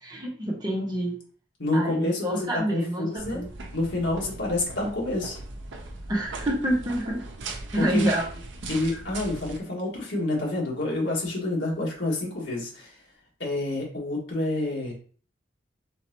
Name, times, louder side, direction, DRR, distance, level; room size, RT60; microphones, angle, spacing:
voice 1, 0.0-1.2 1.7-3.5 6.1-7.2 7.7-8.3, right 1 dB, 20° right, -2 dB, 1.3 m, -27 dB
voice 2, 1.6-3.4 3.7-5.4 7.8-8.1 8.7-12.9 13.4-14.9, left 2 dB, 75° left, -3 dB, 1.8 m, -28 dB
sound 1, 3.2-9.6, right 3 dB, 85° right, 0.7 m, -39 dB
4.4 x 3.8 x 2.9 m, 0.43 s
head